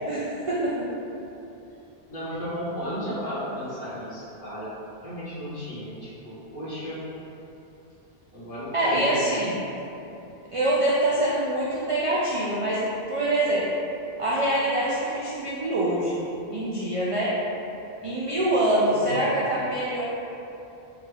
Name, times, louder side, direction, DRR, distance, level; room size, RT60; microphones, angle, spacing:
voice 1, 0.1-0.9 8.7-9.6 10.5-12.8 13.1-13.7 14.2-17.3 18.0-20.0, right 1 dB, 60° right, -7 dB, 0.3 m, -25 dB
voice 2, 2.1-4.7 5.0-7.0 8.3-9.3 18.9-19.3, equal, 55° left, -12 dB, 1.4 m, -34 dB
3.7 x 3.2 x 2.3 m, 2.9 s
omnidirectional pair, 1.0 m